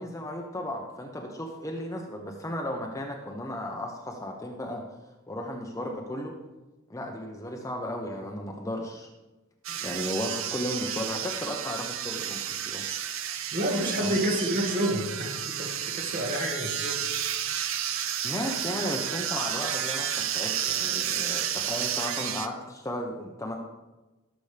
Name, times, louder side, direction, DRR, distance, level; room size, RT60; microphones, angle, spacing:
voice 1, 0.0-4.8 5.3-6.3 6.9-9.1 9.8-12.8 14.0-14.2 18.2-23.5, left 1 dB, 15° left, 1 dB, 0.8 m, -35 dB
sound 1, 9.6-22.5, right 9 dB, 60° right, 0.6 m, -31 dB
voice 2, 13.5-17.1, equal, 40° right, 0 dB, 2.0 m, -29 dB
18.0 x 7.0 x 3.4 m, 1.1 s
head